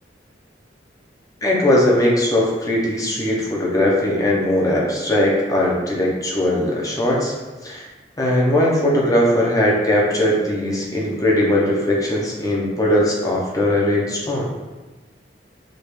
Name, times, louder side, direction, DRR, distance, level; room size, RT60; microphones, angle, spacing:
voice 1, 1.4-7.3 7.6-7.8 8.2-14.5, left 1 dB, 20° left, -3 dB, 0.7 m, -19 dB
5.0 x 2.4 x 3.1 m, 1.2 s
head